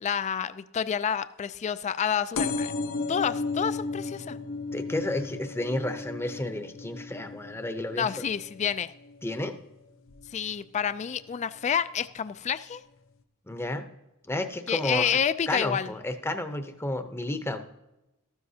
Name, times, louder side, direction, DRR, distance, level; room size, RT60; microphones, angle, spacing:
voice 1, 0.0-2.7 3.1-4.4 7.9-8.9 10.3-12.8 14.7-15.9, left 8 dB, 30° left, 14 dB, 0.3 m, -29 dB
sound 1, 2.3-9.6 10.1-10.5 11.4-11.5 11.7-11.8 12.0-12.1, left 3 dB, 65° left, 0.7 m, -35 dB
voice 2, 4.7-8.1 9.2-9.6 13.5-13.9 14.3-15.1 15.5-17.6, left 1 dB, 10° left, 8 dB, 0.7 m, -31 dB
14.0 x 12.5 x 2.8 m, 0.95 s
head